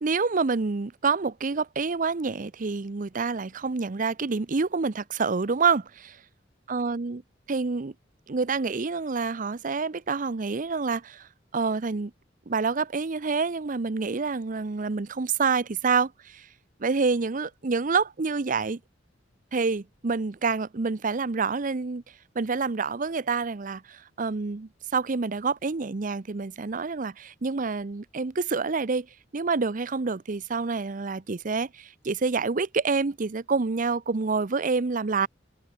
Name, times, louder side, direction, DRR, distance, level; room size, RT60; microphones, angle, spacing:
voice 1, 0.0-5.9 6.7-7.2 7.5-7.9 8.3-11.3 11.5-12.1 12.5-16.5 16.8-18.8 19.5-22.0 22.3-29.1 29.3-35.3, right 4 dB, 45° right, 0.7 m, -27 dB
head